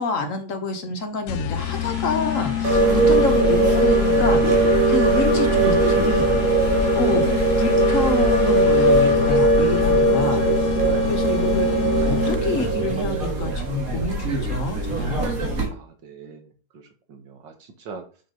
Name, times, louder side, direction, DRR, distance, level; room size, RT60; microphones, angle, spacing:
voice 1, 0.0-6.3 6.9-7.2 7.6-10.4 10.7-10.8 11.1-15.3, left 3 dB, 50° left, 6 dB, 1.3 m, -28 dB
sound 1, 1.3-12.7, left 10 dB, 70° left, 1.0 m, -26 dB
sound 2, 1.6-9.1, equal, 35° right, 3.0 m, -42 dB
sound 3, 2.6-15.7, right 2 dB, 50° right, 2.2 m, -20 dB
voice 2, 2.8-3.2 10.0-10.4 10.9-11.2 15.7-16.5 16.7-16.8 17.1-18.0, right 5 dB, 90° right, 5 dB, 2.1 m, -39 dB
5.9 x 5.8 x 5.1 m, 0.39 s
omnidirectional pair, 1.9 m